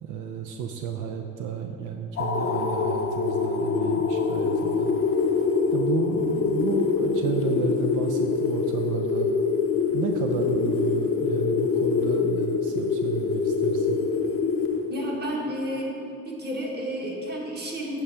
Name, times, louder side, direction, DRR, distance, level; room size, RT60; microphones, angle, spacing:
voice 1, 0.0-4.9 5.7-9.3 9.9-14.0, right 7 dB, 85° right, 4 dB, 0.5 m, -32 dB
sound 1, 2.2-15.4, left 5 dB, 45° left, 0.6 m, -25 dB
voice 2, 14.9-16.0 16.2-18.0, equal, 35° right, -2 dB, 1.4 m, -31 dB
8.4 x 4.9 x 3.3 m, 2.7 s
cardioid pair, 90°, 30 cm